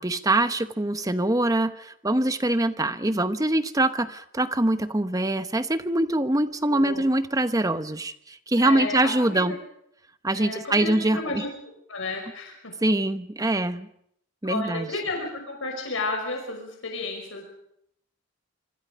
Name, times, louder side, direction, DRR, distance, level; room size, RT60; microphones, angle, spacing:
voice 1, 0.0-9.5 10.2-11.4 12.8-13.9 14.4-14.9, right 1 dB, 15° right, 11 dB, 1.0 m, -24 dB
voice 2, 6.7-7.0 8.6-9.6 10.4-11.5 11.9-12.8 14.4-17.4, left 3 dB, 75° left, 2 dB, 5.6 m, -32 dB
26.0 x 25.5 x 5.3 m, 0.72 s
head